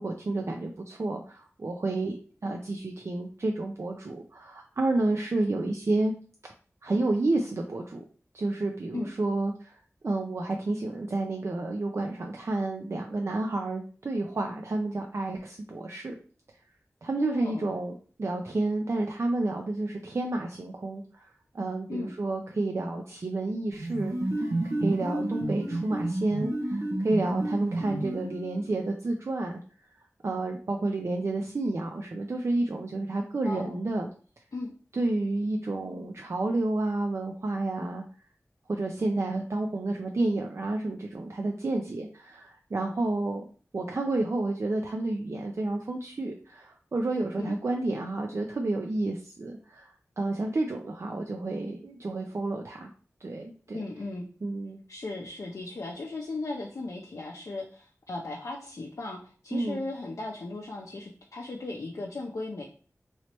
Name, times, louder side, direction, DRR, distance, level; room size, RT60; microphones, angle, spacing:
voice 1, 0.0-2.2 2.4-6.1 6.8-8.0 8.3-9.8 10.0-16.1 17.0-17.9 18.2-24.5 24.8-29.5 30.2-34.1 34.9-38.0 38.7-43.5 43.7-52.9 53.2-53.8 54.4-54.8 59.5-59.8, right 2 dB, 55° right, 2 dB, 0.4 m, -30 dB
voice 2, 17.2-17.8 21.9-22.1 33.4-33.8 34.5-34.7 47.4-47.5 53.7-54.3 54.9-62.6, left 2 dB, 75° left, -1 dB, 0.5 m, -36 dB
sound 1, 23.7-28.6, right 1 dB, 90° right, 1.0 m, -30 dB
3.1 x 3.0 x 2.9 m, 0.41 s
wide cardioid pair, 60°, 5 cm